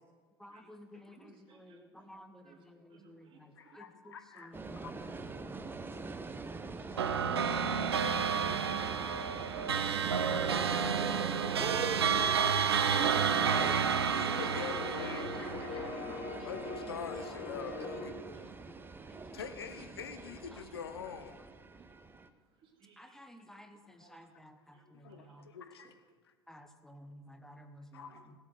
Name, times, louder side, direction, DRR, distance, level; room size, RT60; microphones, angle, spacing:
voice 1, 0.4-6.3 7.0-8.1 8.4-9.2 15.2-16.6 16.9-17.5 17.8-18.0 18.3-18.8 19.1-19.4 20.5-20.6 23.0-25.5 26.5-28.3, equal, 5° left, 6 dB, 1.2 m, -54 dB
voice 2, 0.9-2.0 2.4-2.6 2.9-3.4 3.6-3.8 4.3-4.5 6.6-7.6 11.5-13.8 18.3-18.5 19.0-19.1 21.9-22.0 22.6-23.0 24.0-24.3 24.7-24.8 25.1-25.4 25.8-25.9 28.0-28.2, right 6 dB, 40° right, 3 dB, 2.6 m, -47 dB
voice 3, 3.5-5.0 7.5-7.6 11.0-11.1 13.6-16.1 16.5-18.5 19.3-21.4 24.9-25.9 27.9-28.2, left 6 dB, 70° left, 8 dB, 1.2 m, -45 dB
sound 1, 4.5-22.3, right 3 dB, 15° right, 1.0 m, -45 dB
sound 2, 7.0-16.6, right 7 dB, 75° right, 0.8 m, -31 dB
sound 3, 10.4-18.1, left 2 dB, 55° left, 3.1 m, -43 dB
17.0 x 8.1 x 6.5 m, 1.4 s
figure-of-eight pair, 70°, 13 cm